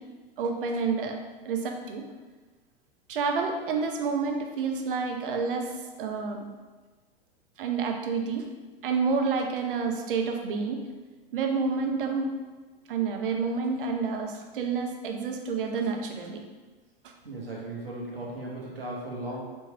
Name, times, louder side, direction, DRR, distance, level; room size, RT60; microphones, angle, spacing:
voice 1, 0.4-1.2 1.4-2.0 3.1-6.5 7.6-8.4 8.8-10.8 11.3-12.3 12.9-16.4 17.0-17.1, right 5 dB, 65° right, 3 dB, 0.7 m, -29 dB
voice 2, 17.2-19.4, right 1 dB, 80° right, -3 dB, 1.2 m, -36 dB
4.1 x 3.1 x 3.3 m, 1.3 s
figure-of-eight pair, 95°, 29 cm